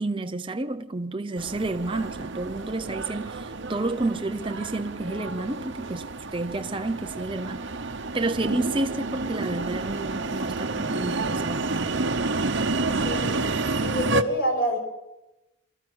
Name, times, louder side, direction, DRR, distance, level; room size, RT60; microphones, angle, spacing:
voice 1, 0.0-6.1 6.3-7.7 8.1-12.1, right 2 dB, 25° right, 0.8 m, -30 dB
sound 1, 1.4-14.2, right 3 dB, 60° right, 1.1 m, -30 dB
voice 2, 13.0-13.5 13.8-14.8, equal, 50° left, 6.0 m, -27 dB
24.0 x 14.0 x 8.0 m
head